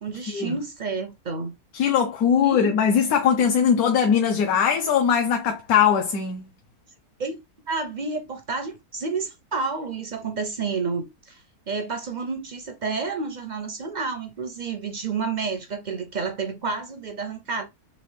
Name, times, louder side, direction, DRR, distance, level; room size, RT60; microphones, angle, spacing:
voice 1, 0.0-1.6 2.4-2.6 7.2-7.4 7.7-11.4 11.7-17.7, right 4 dB, 60° right, 0.4 m, -30 dB
voice 2, 1.7-6.4, left 7 dB, 70° left, 1.1 m, -20 dB
4.2 x 3.1 x 3.2 m
omnidirectional pair, 1.7 m